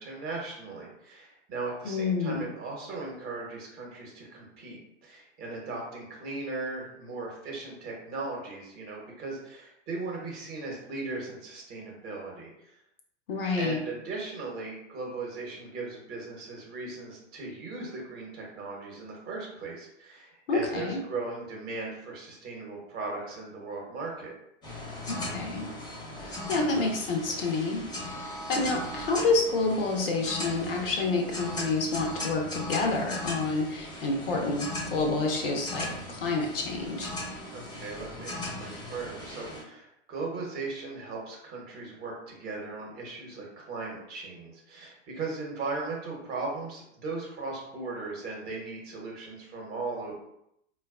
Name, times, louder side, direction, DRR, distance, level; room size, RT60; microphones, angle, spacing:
voice 1, 0.0-12.7 13.6-24.3 37.5-50.1, right 3 dB, 25° right, -2 dB, 1.0 m, -38 dB
voice 2, 1.8-2.5 13.3-13.8 20.5-21.0 25.1-25.7 26.2-27.9 28.3-37.1, left 3 dB, 50° left, 1 dB, 0.7 m, -28 dB
sound 1, 24.6-39.6, left 1 dB, 10° left, 0.8 m, -38 dB
4.5 x 2.3 x 2.3 m, 0.78 s
figure-of-eight pair, 105°, 37 cm